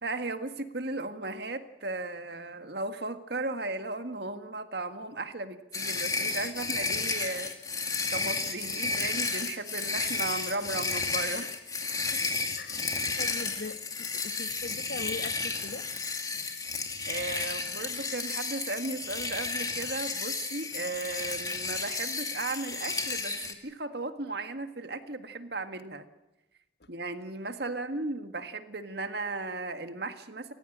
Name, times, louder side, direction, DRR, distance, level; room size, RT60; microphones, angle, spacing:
voice 1, 0.0-7.5 8.1-11.5 17.1-26.1 26.9-30.5, right 2 dB, 60° right, 8 dB, 1.7 m, -36 dB
sound 1, 5.7-23.5, left 4 dB, 20° left, 2.2 m, -32 dB
voice 2, 12.6-12.9 13.2-15.8, left 3 dB, 60° left, 11 dB, 1.1 m, -41 dB
29.0 x 15.0 x 8.8 m, 0.97 s
head